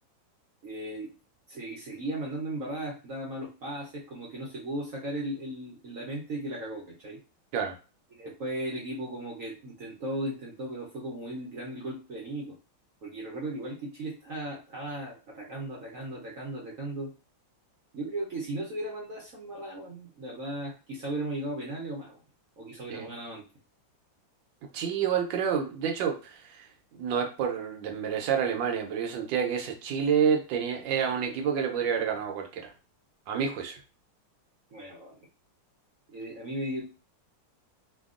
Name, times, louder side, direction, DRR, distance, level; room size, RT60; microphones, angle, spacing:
voice 1, 0.6-1.1 1.5-7.2 8.1-12.6 13.0-17.1 17.9-22.2 22.6-23.4 34.7-35.2 36.1-36.8, right 1 dB, 60° right, -4 dB, 0.9 m, -36 dB
voice 2, 24.7-26.7 27.0-32.7 33.3-33.8, right 7 dB, 75° right, 3 dB, 1.3 m, -28 dB
3.3 x 2.3 x 2.4 m, 0.33 s
omnidirectional pair, 2.2 m